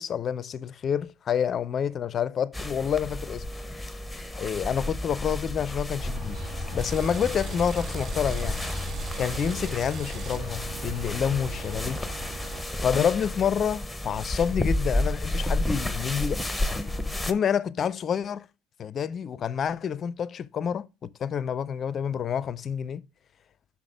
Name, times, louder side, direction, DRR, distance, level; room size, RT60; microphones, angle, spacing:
voice 1, 0.0-3.4 4.4-6.4 6.7-8.6 9.2-12.1 12.8-16.4 17.3-18.5 18.8-23.0, left 8 dB, 40° left, 0.5 m, -28 dB
sound 1, 2.5-17.3, left 1 dB, 5° left, 0.8 m, -32 dB
sound 2, 6.0-12.6, right 1 dB, 60° right, 2.3 m, -39 dB
sound 3, 6.8-13.0, right 7 dB, 40° right, 0.5 m, -46 dB
5.8 x 5.7 x 4.9 m
hypercardioid pair, 70°, 0 cm